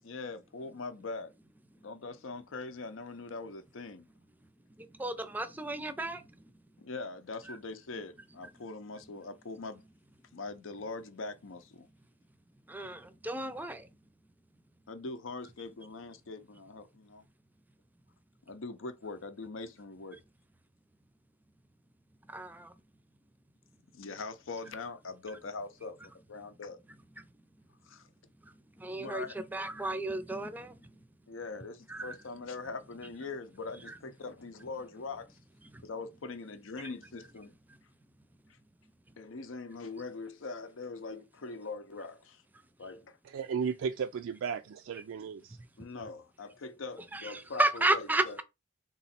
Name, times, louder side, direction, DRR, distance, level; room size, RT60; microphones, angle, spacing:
voice 1, 0.0-1.3 1.8-4.1 6.8-9.8 10.3-11.9 14.9-17.3 18.5-20.2 23.9-26.0 26.3-26.8 27.8-28.1 29.0-29.4 31.3-35.4 35.8-37.5 39.2-42.4 42.8-43.2 45.8-48.4, left 3 dB, 85° left, 0.6 m, -42 dB
voice 2, 4.8-6.4 12.7-13.9 22.3-22.7 28.4-30.9 31.9-32.2 33.9-34.0 35.7-35.8 47.1-47.3 47.6-48.4, right 2 dB, 10° right, 0.5 m, -33 dB
voice 3, 43.2-45.6, right 6 dB, 80° right, 0.3 m, -35 dB
3.7 x 3.0 x 4.2 m
head